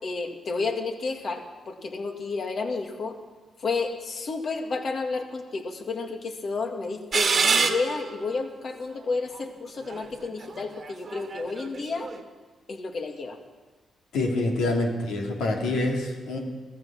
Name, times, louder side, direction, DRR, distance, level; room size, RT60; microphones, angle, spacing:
voice 1, 0.0-3.2 3.6-12.1 12.7-13.4, left 4 dB, 60° left, 4 dB, 2.1 m, -31 dB
sound 1, 7.1-8.3 9.0-9.1 9.9-12.2, right 5 dB, 55° right, 1.4 m, -26 dB
voice 2, 14.1-16.4, left 2 dB, 85° left, 0 dB, 2.5 m, -26 dB
16.0 x 14.5 x 6.0 m, 1.3 s
supercardioid pair, 55°, 0 cm